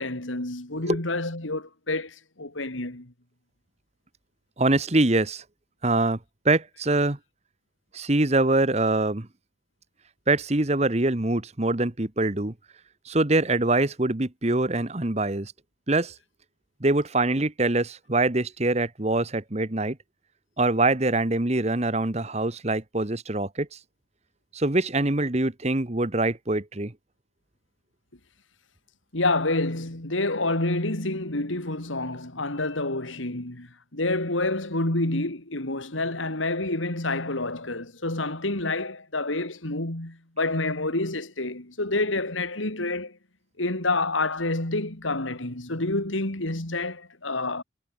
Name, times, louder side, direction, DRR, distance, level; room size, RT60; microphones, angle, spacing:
voice 1, 0.0-3.1 29.1-43.2 43.6-47.6, left 2 dB, 90° left, 3.8 m, -28 dB
voice 2, 4.6-5.4 5.8-6.2 6.4-7.2 7.9-9.3 10.3-12.5 13.1-15.5 15.9-16.1 16.8-20.0 20.6-23.7 24.5-26.9, right 2 dB, 35° right, 1.3 m, -24 dB
head